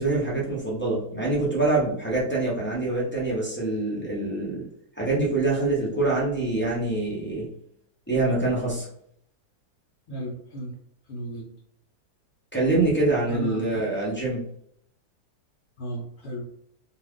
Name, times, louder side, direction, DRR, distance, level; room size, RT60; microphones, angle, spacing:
voice 1, 0.0-4.6 5.0-7.5 8.1-8.9 12.5-14.4, right 2 dB, 10° left, -7 dB, 0.5 m, -25 dB
voice 2, 10.1-10.8 11.1-11.5 13.3-13.6 15.8-16.5, right 1 dB, 60° left, -3 dB, 0.7 m, -34 dB
2.6 x 2.4 x 3.5 m, 0.67 s
omnidirectional pair, 1.7 m